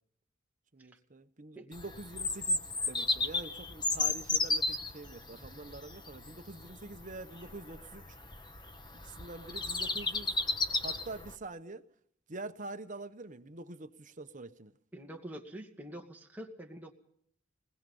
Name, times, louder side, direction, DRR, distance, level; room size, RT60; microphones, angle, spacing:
voice 1, 0.7-8.2 9.0-10.4 10.8-11.8 12.3-14.7, right 2 dB, 40° right, 1.1 m, -45 dB
Bird vocalization bird call bird song, 1.7-11.4, left 3 dB, 25° left, 1.2 m, -34 dB
voice 2, 14.9-16.9, right 1 dB, 10° right, 2.2 m, -45 dB
26.0 x 20.5 x 5.5 m
head